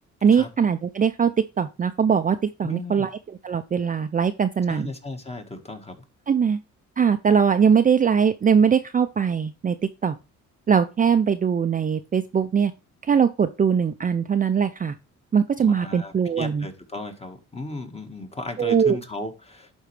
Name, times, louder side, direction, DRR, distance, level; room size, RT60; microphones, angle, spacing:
voice 1, 0.2-1.3 1.6-4.9 6.3-6.6 7.0-9.8 10.0-10.2 10.7-12.7 13.1-15.0 15.3-16.7 18.6-19.0, right 7 dB, 30° right, 8 dB, 0.5 m, -21 dB
voice 2, 2.6-3.1 4.7-6.0 15.6-19.7, left 2 dB, 20° left, 5 dB, 1.6 m, -35 dB
11.5 x 4.5 x 3.3 m, 0.29 s
cardioid pair, 90°, 30 cm